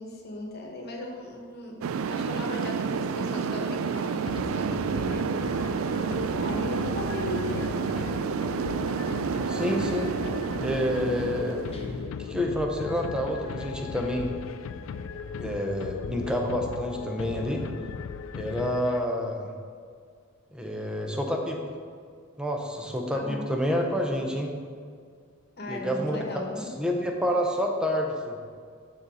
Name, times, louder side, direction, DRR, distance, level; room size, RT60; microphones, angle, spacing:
voice 1, 0.0-5.6 6.3-7.9 23.1-23.4 25.6-26.7, left 1 dB, 50° left, 0 dB, 1.2 m, -37 dB
sound 1, 1.8-12.1, right 6 dB, 75° right, 0.3 m, -30 dB
sound 2, 4.2-19.3, left 6 dB, 70° left, 0.3 m, -37 dB
voice 2, 9.5-10.1 10.6-11.6 12.2-14.3 15.3-17.6 18.3-19.5 20.5-21.6 22.4-24.5 25.7-26.2 26.8-28.4, equal, 5° right, 1 dB, 0.7 m, -28 dB
Guitar, 11.7-14.3, left 1 dB, 30° left, 0.8 m, -45 dB
12.0 x 4.2 x 3.9 m, 2.1 s
head